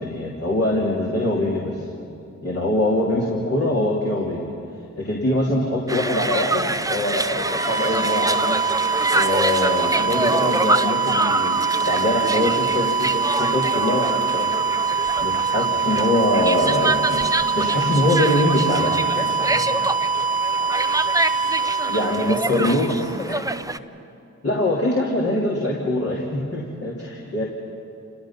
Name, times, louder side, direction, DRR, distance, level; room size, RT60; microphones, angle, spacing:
voice 1, 0.0-1.8 2.4-4.5 5.0-8.6 9.1-11.6 11.8-14.5 15.2-17.2 17.5-19.1 21.9-22.9 24.4-27.4, left 1 dB, 45° left, -3 dB, 3.1 m, -23 dB
sound 1, 5.9-23.8, right 2 dB, 10° right, 0.6 m, -26 dB
sound 2, 7.2-23.0, right 5 dB, 75° left, 7.2 m, -24 dB
voice 2, 19.1-19.9 22.4-23.5, left 1 dB, 25° left, 2 dB, 3.5 m, -33 dB
29.0 x 17.5 x 5.9 m, 2.6 s
cardioid pair, 55°, 31 cm